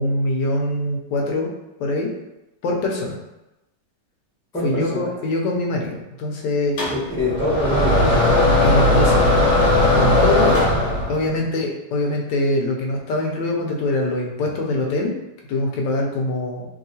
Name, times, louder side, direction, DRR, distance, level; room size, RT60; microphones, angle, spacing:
voice 1, 0.0-1.5 1.8-2.1 2.6-3.2 4.6-6.8 8.6-9.2 9.9-10.7 11.1-15.2 15.5-16.7, left 2 dB, 90° left, 0 dB, 1.3 m, -23 dB
voice 2, 4.5-5.1 6.9-8.2 11.2-11.6, left 1 dB, 5° left, -9 dB, 1.0 m, -25 dB
sound 1, 6.8-11.3, left 2 dB, 70° left, 1.4 m, -17 dB
3.0 x 2.8 x 2.7 m, 0.96 s
omnidirectional pair, 1.8 m